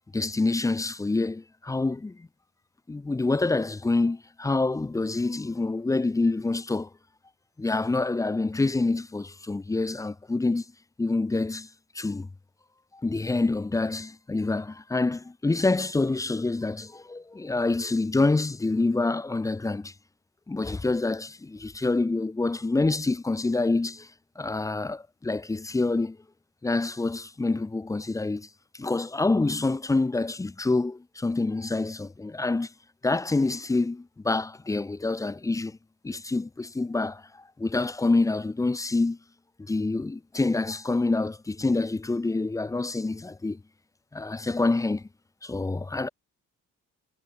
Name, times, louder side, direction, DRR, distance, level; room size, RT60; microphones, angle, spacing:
voice 1, 0.1-2.3 2.9-6.9 7.6-10.6 11.0-11.7 11.9-12.3 12.9-19.9 20.5-24.1 24.4-26.2 26.6-28.5 28.8-32.7 33.0-35.8 36.0-37.2 37.6-39.2 39.7-43.6 44.1-45.0 45.4-46.1, left 3 dB, 10° left, 0.5 m, -27 dB
cardioid pair, 90°, 30 cm